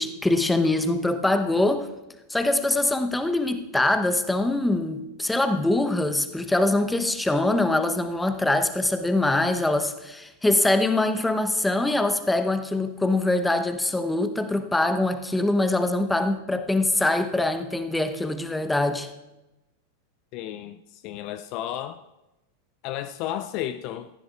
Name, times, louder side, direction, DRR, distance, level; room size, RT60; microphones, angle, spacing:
voice 1, 0.0-1.9 2.3-19.1, left 2 dB, 5° left, 9 dB, 0.9 m, -23 dB
voice 2, 20.3-22.0 22.8-24.1, left 12 dB, 40° left, 12 dB, 0.4 m, -33 dB
18.0 x 14.5 x 2.5 m, 0.98 s
figure-of-eight pair, 90°, 0 cm